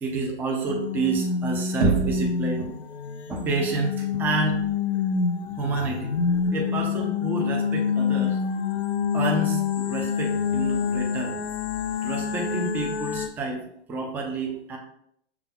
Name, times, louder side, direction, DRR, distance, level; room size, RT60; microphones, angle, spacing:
voice 1, 0.0-2.8 3.3-4.6 5.6-6.1 6.5-8.4 9.1-11.4 12.0-13.6 13.9-14.8, right 3 dB, 5° right, 0 dB, 0.4 m, -29 dB
sound 1, 0.7-13.3, left 6 dB, 75° left, 0.5 m, -27 dB
Knock, 1.8-2.4, right 3 dB, 80° right, 0.8 m, -23 dB
5.9 x 3.3 x 2.3 m, 0.71 s
figure-of-eight pair, 105°, 33 cm